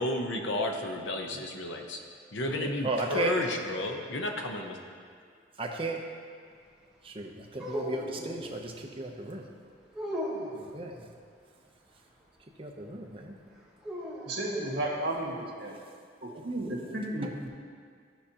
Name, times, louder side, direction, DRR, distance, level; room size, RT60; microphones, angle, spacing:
voice 1, 0.0-2.0 2.3-4.8, left 1 dB, 70° left, 3 dB, 0.8 m, -32 dB
voice 2, 2.6-3.3 5.6-6.0 7.0-9.4 10.7-11.1 12.6-13.4 16.3-16.5 17.2-17.3, right 2 dB, 30° right, 1 dB, 0.7 m, -35 dB
sound 1, 7.5-8.6 9.9-10.8 13.8-14.9, equal, 5° right, 1.1 m, -37 dB
voice 3, 14.2-15.7 16.2-17.5, right 1 dB, 65° right, -3 dB, 1.7 m, -33 dB
14.0 x 4.9 x 2.8 m, 2.1 s
head